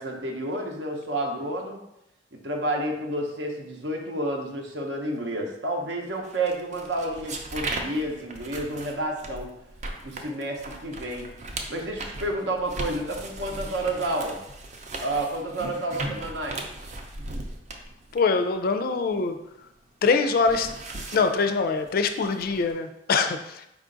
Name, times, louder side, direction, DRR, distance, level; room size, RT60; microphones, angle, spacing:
voice 1, 0.0-1.8 2.3-9.5 10.0-11.3 11.7-14.4 15.0-16.6, right 1 dB, 75° right, 1 dB, 0.8 m, -30 dB
sound 1, 6.2-19.7 20.1-22.7, right 2 dB, 40° right, 0.5 m, -38 dB
voice 2, 18.1-19.4 20.0-20.7 21.1-23.7, left 4 dB, 55° left, 8 dB, 0.3 m, -24 dB
5.0 x 2.5 x 3.8 m, 0.84 s
head